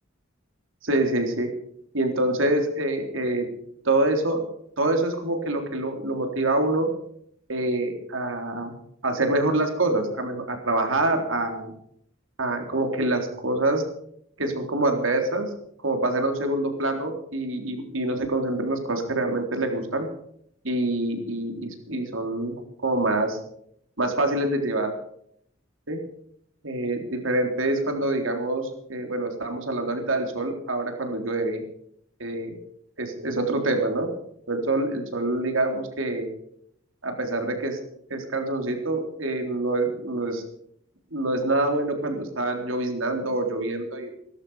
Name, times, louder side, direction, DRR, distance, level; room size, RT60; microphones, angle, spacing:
voice 1, 0.8-1.5 1.9-3.5 3.8-4.4 4.8-6.9 7.5-8.7 9.0-11.7 12.4-13.8 14.4-15.5 15.8-20.1 20.6-22.6 22.8-23.4 24.0-24.9 25.9-26.0 26.6-31.6 32.2-32.6 33.0-34.1 34.5-36.3 37.0-37.8 38.1-40.4 41.1-44.1, right 2 dB, 80° right, 4 dB, 3.7 m, -26 dB
18.0 x 14.0 x 5.0 m, 0.69 s
head